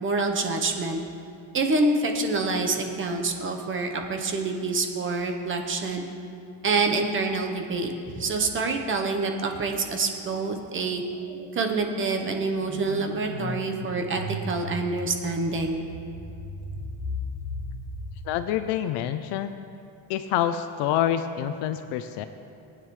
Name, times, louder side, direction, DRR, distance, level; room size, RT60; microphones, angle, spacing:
voice 1, 0.0-1.0 1.5-6.1 6.6-11.0 11.5-15.8, right 3 dB, 25° right, 3 dB, 1.0 m, -27 dB
sound 1, 9.6-9.9 10.2-19.0, left 1 dB, 5° right, 2.2 m, -38 dB
voice 2, 18.2-19.5 20.1-22.2, left 10 dB, 60° left, 10 dB, 0.6 m, -27 dB
19.0 x 9.4 x 3.2 m, 2.6 s
cardioid pair, 155°, 48 cm